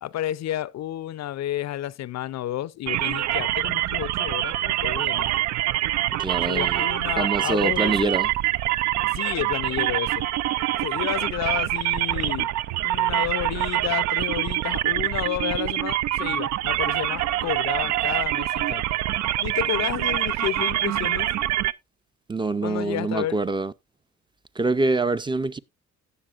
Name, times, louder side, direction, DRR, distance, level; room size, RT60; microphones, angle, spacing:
voice 1, 0.0-5.3 6.5-8.1 9.1-10.3 10.8-12.5 12.8-18.9 19.4-21.3 22.6-23.4, left 13 dB, 60° left, 0.5 m, -31 dB
sound 1, 2.9-21.7, right 14 dB, 65° right, 0.5 m, -25 dB
voice 2, 6.2-6.9 7.2-8.3 22.3-23.7 24.6-25.6, right 3 dB, 15° right, 0.5 m, -25 dB
16.5 x 6.8 x 2.4 m
cardioid pair, 90°, 30 cm